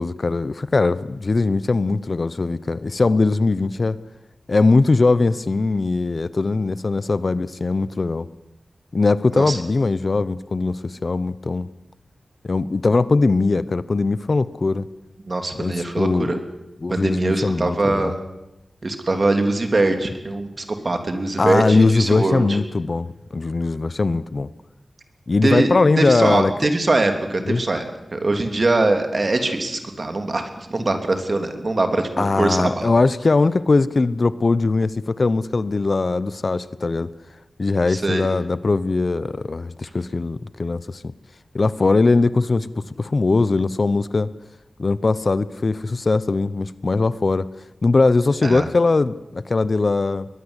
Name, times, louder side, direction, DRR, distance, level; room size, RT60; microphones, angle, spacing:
voice 1, 0.0-4.0 4.5-8.3 8.9-11.7 12.4-14.9 15.6-16.3 16.8-18.1 21.4-24.5 25.3-26.5 27.5-27.6 32.2-37.1 37.6-41.1 41.5-42.7 43.0-44.3 44.8-47.5 47.8-50.3, left 3 dB, 50° left, 17 dB, 0.8 m, -20 dB
voice 2, 15.3-16.4 16.9-18.2 18.8-22.6 25.4-27.9 28.1-32.9 37.9-38.3 48.4-48.7, right 2 dB, 45° right, 6 dB, 3.1 m, -22 dB
22.0 x 20.5 x 8.2 m, 0.96 s
wide cardioid pair, 100°, 0 cm